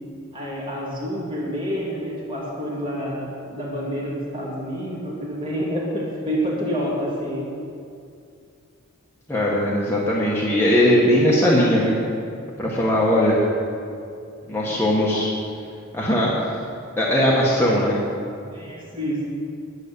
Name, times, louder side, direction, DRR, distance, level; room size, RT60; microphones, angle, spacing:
voice 1, 0.3-7.4 14.7-14.8 18.5-19.3, equal, 25° right, -6 dB, 2.5 m, -28 dB
voice 2, 9.3-11.9 12.6-13.4 14.5-15.3 15.9-16.5 17.0-18.0, equal, 10° left, -6 dB, 1.3 m, -19 dB
10.0 x 9.4 x 6.8 m, 2.4 s
head